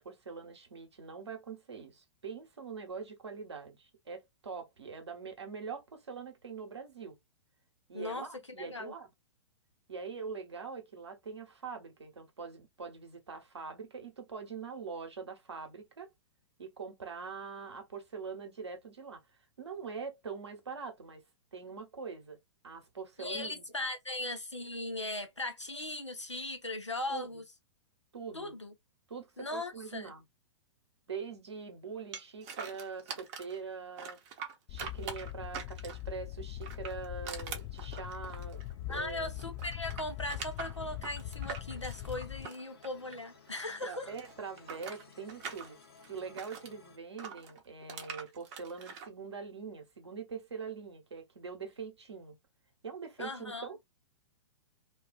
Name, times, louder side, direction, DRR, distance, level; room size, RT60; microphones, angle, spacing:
voice 1, 0.0-7.2 7.9-9.1 9.9-16.1 16.6-19.2 19.6-21.2 21.5-22.4 22.6-23.6 27.1-27.3 28.1-28.5 29.1-30.2 31.1-34.2 34.7-39.4 43.8-45.8 46.1-52.4 52.8-53.8, right 5 dB, 70° right, 0.9 m, -43 dB
voice 2, 7.9-8.3 8.6-8.9 23.2-27.4 28.3-28.7 29.4-30.1 38.9-44.1 53.2-53.7, left 2 dB, 85° left, 0.6 m, -38 dB
sound 1, 32.1-33.6 34.0-36.1 36.6-39.1 39.4-43.5 43.8-46.7 47.2-49.1, right 6 dB, 35° right, 0.7 m, -44 dB
sound 2, 34.7-42.5, left 14 dB, 25° left, 0.3 m, -42 dB
sound 3, 37.0-47.0, left 6 dB, 60° left, 0.9 m, -60 dB
2.4 x 2.3 x 2.3 m
figure-of-eight pair, 110°, 15 cm